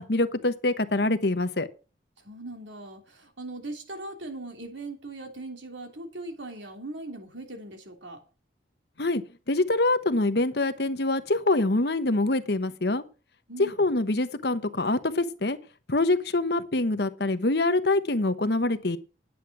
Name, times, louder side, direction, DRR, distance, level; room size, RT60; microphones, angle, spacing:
voice 1, 0.0-1.7 9.0-9.2 9.5-13.0 13.6-15.6 15.9-19.0, left 2 dB, 55° left, 11 dB, 1.0 m, -25 dB
voice 2, 2.2-8.2 13.5-13.8, right 2 dB, 75° right, 4 dB, 3.1 m, -40 dB
10.0 x 8.8 x 6.0 m, 0.34 s
head